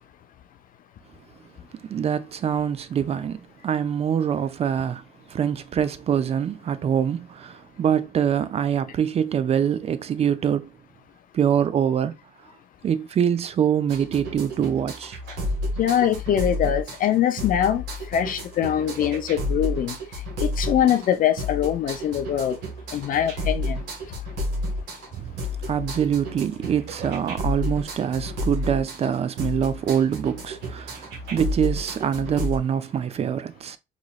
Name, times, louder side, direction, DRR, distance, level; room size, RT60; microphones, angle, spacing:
voice 1, 1.9-5.0 5.3-10.7 11.3-12.2 12.8-15.2 25.1-25.4 25.7-33.8, right 8 dB, 35° right, 0.4 m, -24 dB
sound 1, 13.9-32.6, left 1 dB, 85° right, 1.5 m, -31 dB
voice 2, 15.8-20.0 20.4-22.6 22.9-23.8, left 10 dB, 55° left, 0.5 m, -23 dB
4.0 x 3.0 x 2.3 m
cardioid pair, 110°, 17 cm